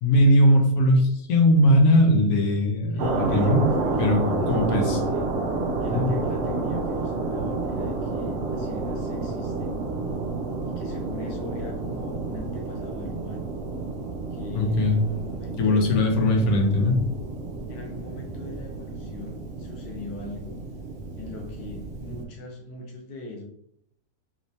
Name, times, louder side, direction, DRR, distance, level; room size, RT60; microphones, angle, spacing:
voice 1, 0.0-3.6 4.0-4.2 4.5-5.0 5.9-6.1 14.5-14.9 15.6-17.0 17.5-17.6, left 1 dB, 75° left, 2 dB, 1.1 m, -20 dB
voice 2, 2.9-5.3 5.8-9.8 10.6-13.5 14.3-16.7 17.7-20.6 21.2-23.4, left 2 dB, 50° left, 0 dB, 0.7 m, -40 dB
sound 1, 3.0-22.2, right 3 dB, 65° right, 0.6 m, -30 dB
3.2 x 3.0 x 2.7 m, 0.71 s
omnidirectional pair, 1.6 m